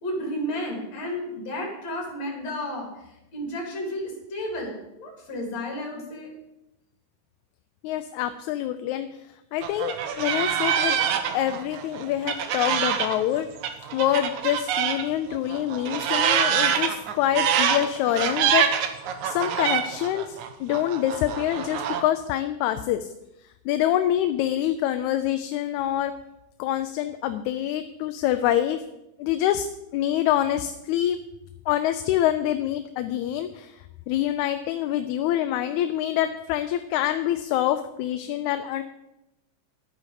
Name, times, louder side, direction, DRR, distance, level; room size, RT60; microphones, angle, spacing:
voice 1, 0.0-6.3, left 1 dB, 65° left, 1 dB, 4.0 m, -32 dB
voice 2, 7.8-9.1 9.5-11.0 11.3-13.5 13.9-18.7 19.2-23.1 23.7-26.1 26.6-28.8 29.2-29.7 29.9-31.2 31.7-33.8 34.1-38.8, left 12 dB, 85° left, 9 dB, 1.9 m, -26 dB
sound 1, 9.6-15.0 15.3-22.0, right 8 dB, 85° right, 2.3 m, -25 dB
11.0 x 9.2 x 4.8 m, 0.90 s
omnidirectional pair, 3.3 m